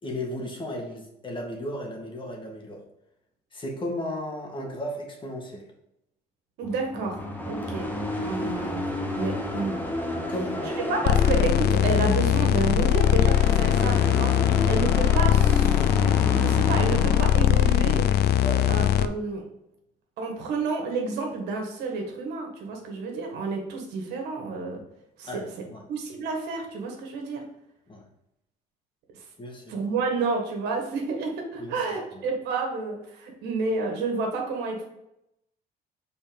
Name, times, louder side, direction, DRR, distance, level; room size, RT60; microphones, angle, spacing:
voice 1, 0.0-2.8 3.5-5.6 10.3-11.1 18.4-18.6 25.2-25.8 27.9-28.0 29.4-29.7 31.6-31.8, left 1 dB, 30° left, 0 dB, 1.9 m, -34 dB
sound 1, 6.6-17.7, left 1 dB, 10° left, 1.2 m, -31 dB
voice 2, 6.6-7.9 8.2-9.8 10.9-15.9 16.2-18.3 18.7-19.4 20.2-24.8 25.2-25.4 25.9-27.4 29.1-29.2 29.7-34.9, right 4 dB, 85° right, 1 dB, 1.7 m, -30 dB
sound 2, 11.1-19.1, left 11 dB, 75° left, 0.5 m, -21 dB
5.7 x 4.2 x 5.2 m, 0.83 s
cardioid pair, 110°, 17 cm